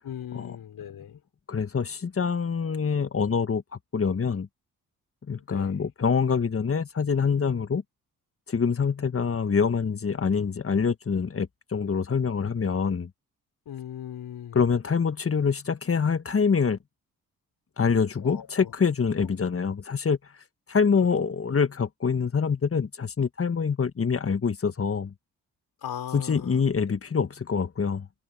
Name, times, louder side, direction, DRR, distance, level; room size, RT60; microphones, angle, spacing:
voice 1, 0.0-1.2 5.4-5.8 13.7-14.6 18.2-18.7 19.2-19.3 25.8-26.6, left 10 dB, 75° left, 5.3 m, -38 dB
voice 2, 1.5-3.6 3.9-4.5 5.3-7.8 8.5-13.1 14.5-16.8 17.8-20.2 20.7-25.1 26.1-28.1, left 6 dB, 35° left, 1.6 m, -25 dB
supercardioid pair, 50°, 38 cm